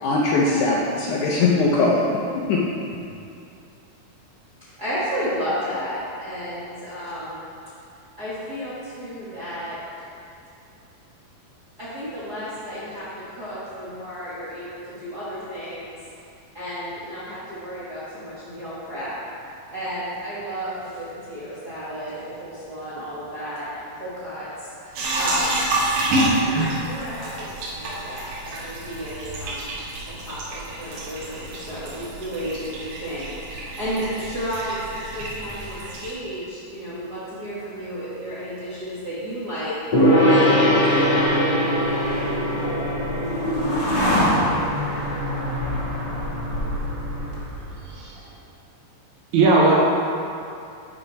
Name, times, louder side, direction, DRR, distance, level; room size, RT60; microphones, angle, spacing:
voice 1, 0.0-2.0 2.5-2.6, left 3 dB, 80° left, -4 dB, 1.8 m, -20 dB
voice 2, 4.6-7.4 8.2-9.8 11.8-16.0 16.5-19.1 19.7-25.9 26.4-29.7 30.2-39.8 40.3-40.5 40.9-42.4, equal, 50° right, -11 dB, 1.2 m, -32 dB
sound 1, 25.0-36.1, right 1 dB, 70° right, 2.7 m, -28 dB
Gong, 39.9-47.4, equal, 25° left, 1.0 m, -22 dB
sound 2, 40.6-48.0, left 1 dB, 55° left, 1.1 m, -27 dB
voice 3, 49.3-49.8, right 3 dB, 85° right, -4 dB, 1.6 m, -17 dB
11.0 x 4.8 x 4.0 m, 2.5 s
omnidirectional pair, 4.4 m